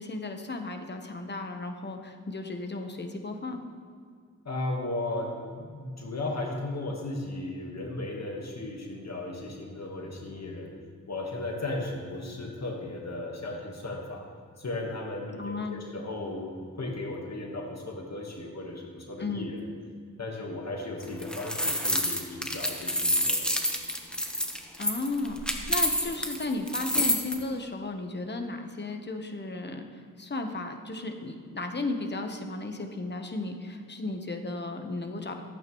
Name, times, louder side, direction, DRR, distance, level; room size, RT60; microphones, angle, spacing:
voice 1, 0.0-3.6 15.3-15.8 19.2-19.5 24.8-29.9 30.2-35.4, left 2 dB, 30° left, 5 dB, 1.0 m, -34 dB
voice 2, 4.4-5.3 5.6-10.7 11.1-14.3 14.6-19.6 20.2-23.4, left 2 dB, 55° left, 0 dB, 1.5 m, -35 dB
sound 1, 21.0-27.3, equal, 5° left, 1.1 m, -28 dB
14.5 x 8.7 x 3.1 m, 2.1 s
wide cardioid pair, 70°, 33 cm